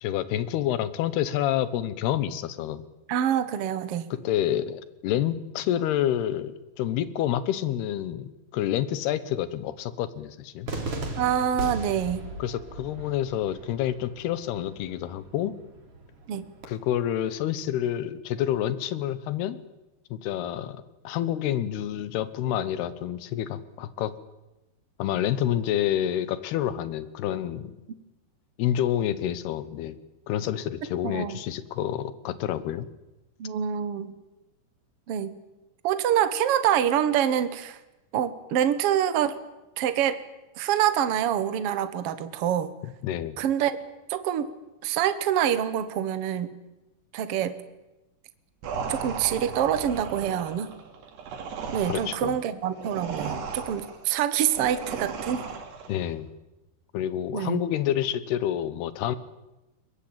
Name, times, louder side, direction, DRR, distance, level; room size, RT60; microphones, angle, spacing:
voice 1, 0.0-2.8 4.1-10.7 12.4-15.5 16.6-19.6 20.1-24.1 25.0-27.8 28.6-30.0 30.3-32.9 43.0-43.4 51.9-52.3 55.9-56.3 56.9-59.2, left 11 dB, 80° left, 15 dB, 3.1 m, -28 dB
voice 2, 3.1-4.1 11.2-12.3 16.3-16.5 31.0-31.4 33.4-34.2 35.1-35.4 35.8-37.8 38.1-39.4 39.8-40.2 40.5-42.7 43.4-43.8 44.1-44.5 44.8-46.6 47.1-47.6 48.9-50.7 51.7-55.4 57.3-57.6, right 10 dB, 65° right, 12 dB, 1.4 m, -26 dB
Cheering / Fireworks, 10.7-16.7, right 2 dB, 35° right, 4.0 m, -38 dB
sound 1, 48.6-56.0, right 5 dB, 80° right, 4.7 m, -36 dB
22.5 x 21.0 x 8.9 m, 1.0 s
omnidirectional pair, 4.7 m